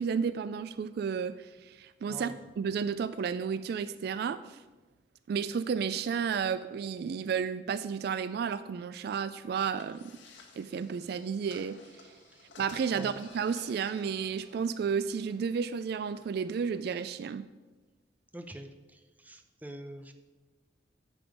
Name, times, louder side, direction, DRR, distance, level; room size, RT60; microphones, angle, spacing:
voice 1, 0.0-4.6 5.3-10.2 10.6-11.8 12.6-17.4, right 6 dB, 60° right, 14 dB, 0.3 m, -32 dB
sound 1, 9.7-16.9, left 3 dB, 80° left, 1.4 m, -55 dB
voice 2, 18.3-20.1, right 1 dB, 10° right, 6 dB, 0.6 m, -45 dB
9.3 x 7.0 x 5.1 m, 1.2 s
head